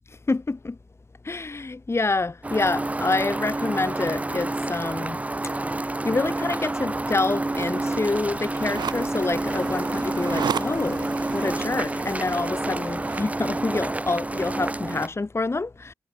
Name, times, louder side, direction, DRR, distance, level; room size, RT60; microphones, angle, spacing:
voice 1, 0.1-0.8 1.2-15.9, left 3 dB, 40° left, 1.5 m, -27 dB
sound 1, 2.4-15.1, right 2 dB, 20° right, 0.6 m, -28 dB
sound 2, 7.5-13.3, right 8 dB, 85° right, 2.2 m, -36 dB
cardioid pair, 45°, 7 cm